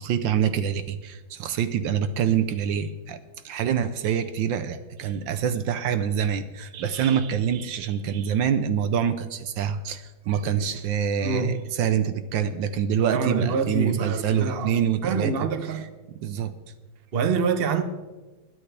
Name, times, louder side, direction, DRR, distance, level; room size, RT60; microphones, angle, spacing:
voice 1, 0.0-3.2 3.4-15.8 16.1-16.5, right 8 dB, 70° right, 1.3 m, -26 dB
voice 2, 11.2-11.6 13.0-14.8 15.0-15.9 17.1-17.8, right 5 dB, 55° right, 0.6 m, -26 dB
20.5 x 9.5 x 3.3 m
omnidirectional pair, 2.3 m